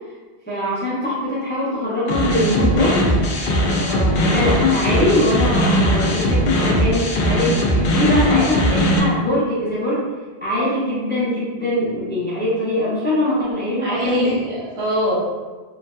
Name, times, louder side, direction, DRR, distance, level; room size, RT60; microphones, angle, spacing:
voice 1, 0.5-3.0 4.2-10.0 10.4-14.3, left 1 dB, 10° left, -9 dB, 0.6 m, -22 dB
sound 1, 2.1-9.0, left 1 dB, 60° left, 0.6 m, -19 dB
voice 2, 3.8-4.2 13.8-15.2, equal, 85° right, -5 dB, 1.1 m, -23 dB
3.0 x 2.6 x 2.2 m, 1.3 s
omnidirectional pair, 1.1 m